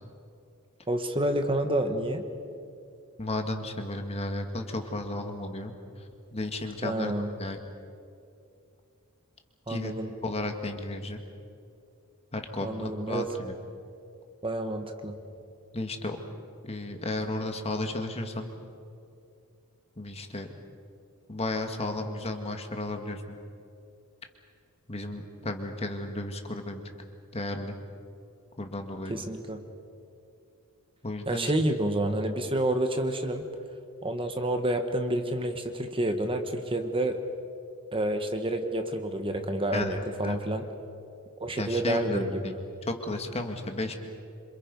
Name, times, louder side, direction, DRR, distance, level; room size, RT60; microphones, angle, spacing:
voice 1, 0.9-2.3 6.8-7.3 9.7-10.1 12.6-13.3 14.4-15.2 29.1-29.6 31.3-33.4 34.0-37.2 37.9-40.6 41.4-42.6, right 1 dB, 25° right, 6 dB, 1.4 m, -29 dB
voice 2, 3.2-7.1 7.4-7.6 9.7-9.9 10.2-11.2 12.3-13.5 15.7-16.2 16.6-18.5 20.0-20.5 21.3-23.2 24.9-26.8 27.3-27.8 28.6-29.2 31.0-31.5 39.7-40.0 40.2-40.4 41.6-42.5 42.9-43.9, left 2 dB, 30° left, 5 dB, 1.9 m, -33 dB
27.0 x 27.0 x 5.4 m, 2.5 s
head